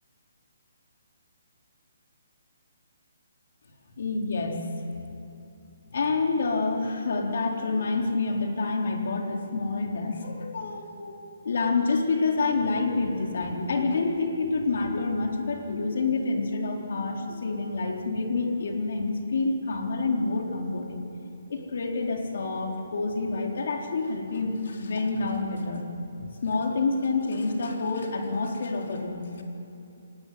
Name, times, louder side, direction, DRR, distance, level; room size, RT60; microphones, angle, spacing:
voice 1, 4.0-4.7 5.0-5.1 5.9-11.1 11.4-21.0 21.5-25.8 26.2-29.2, left 3 dB, 55° left, 1 dB, 4.0 m, -28 dB
25.0 x 19.0 x 9.5 m, 2.7 s
hypercardioid pair, 175°, 0 cm